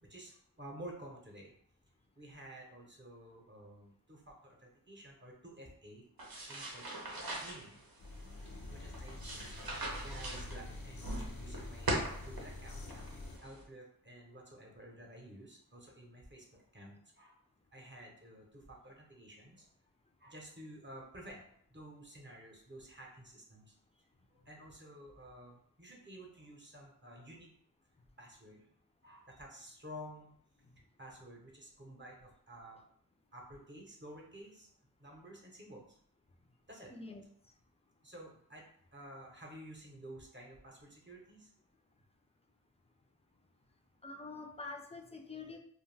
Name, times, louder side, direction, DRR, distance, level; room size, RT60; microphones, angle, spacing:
voice 1, 0.0-1.5 2.2-6.0 6.5-6.9 7.4-7.8 8.7-12.8 13.1-17.3 17.7-19.7 20.2-23.7 24.3-27.5 28.2-28.7 29.0-30.3 31.0-32.8 33.3-34.7 35.0-36.0 36.7-36.9 38.0-41.5, right 1 dB, 30° right, -1 dB, 0.7 m, -52 dB
sound 1, 6.2-13.6, right 1 dB, 80° right, 0.7 m, -42 dB
sound 2, 8.0-13.4, left 2 dB, 80° left, 0.5 m, -47 dB
voice 2, 36.9-37.2 44.0-45.6, left 3 dB, 20° left, 4 dB, 0.4 m, -46 dB
2.5 x 2.2 x 3.2 m, 0.65 s
wide cardioid pair, 45°, 35 cm